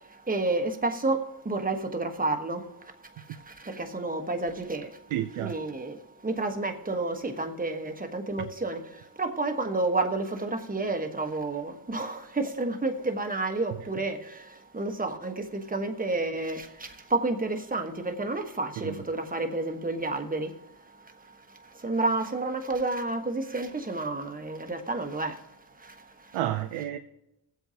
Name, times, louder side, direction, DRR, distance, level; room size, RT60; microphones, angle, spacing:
voice 1, 0.0-2.9 3.2-5.0 5.4-20.6 21.0-25.5 25.8-26.4, right 2 dB, 15° right, 1.3 m, -31 dB
voice 2, 5.1-5.5 18.8-19.0 26.3-27.0, right 12 dB, 90° right, 0.6 m, -30 dB
19.5 x 8.0 x 2.9 m
cardioid pair, 70°, 48 cm